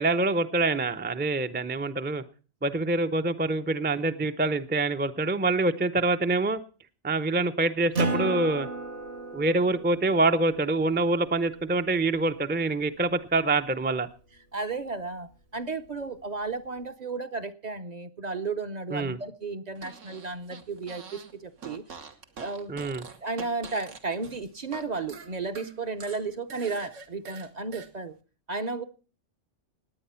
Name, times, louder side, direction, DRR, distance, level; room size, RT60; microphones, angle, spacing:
voice 1, 0.0-2.2 2.6-6.6 7.0-8.7 9.3-14.1 18.9-19.2 22.7-23.0, right 2 dB, 15° right, 0.4 m, -25 dB
Acoustic guitar, 7.9-12.9, right 2 dB, 65° right, 2.2 m, -35 dB
voice 2, 14.5-21.8 22.4-22.7 23.2-28.2 28.5-28.8, right 4 dB, 40° right, 0.7 m, -33 dB
Fart, 19.7-21.3 21.6-24.8 25.1-27.9, right 5 dB, 85° right, 1.7 m, -45 dB
18.5 x 9.0 x 5.6 m
omnidirectional pair, 1.3 m